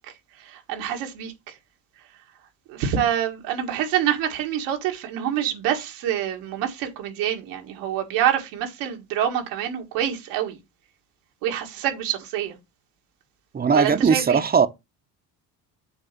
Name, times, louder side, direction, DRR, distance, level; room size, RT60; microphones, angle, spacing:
voice 1, 0.5-1.6 2.7-10.6 11.4-12.5 13.7-14.4, right 10 dB, 90° right, 1.9 m, -26 dB
voice 2, 13.5-14.7, right 6 dB, 25° right, 0.8 m, -19 dB
8.0 x 2.8 x 5.9 m
cardioid pair, 100°, 41 cm